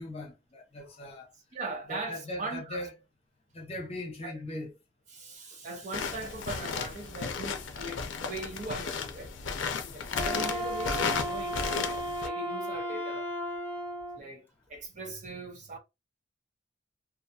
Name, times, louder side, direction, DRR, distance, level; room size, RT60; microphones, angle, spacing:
voice 1, 0.0-1.3 1.9-2.9 3.5-4.7 9.9-10.2, left 1 dB, 35° left, 0.8 m, -40 dB
voice 2, 1.5-2.9 4.2-4.3 5.1-9.3 9.8-11.6 12.2-13.3 14.1-15.8, right 2 dB, 40° right, 0.7 m, -40 dB
sound 1, 5.9-12.3, left 5 dB, 80° left, 0.5 m, -34 dB
Wind instrument woodwind instrument, 10.1-14.2, equal, 10° left, 0.5 m, -34 dB
2.5 x 2.3 x 2.6 m
head